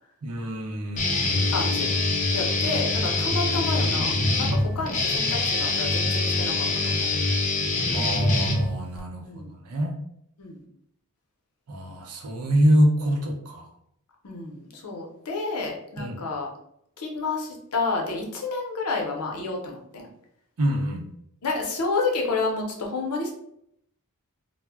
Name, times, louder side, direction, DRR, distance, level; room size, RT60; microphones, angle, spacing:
voice 1, 0.2-1.7 3.3-3.5 4.7-4.9 7.9-9.9 11.7-13.7 16.0-16.2 20.6-21.0, equal, 80° right, 1 dB, 0.6 m, -26 dB
Guitar, 1.0-9.0, left 2 dB, 35° left, 0.4 m, -24 dB
voice 2, 1.5-1.9 2.3-7.1 9.2-9.5 10.4-10.6 14.2-16.5 17.0-20.1 21.4-23.3, left 3 dB, 90° left, 1 dB, 0.7 m, -30 dB
2.1 x 2.1 x 3.4 m, 0.74 s
head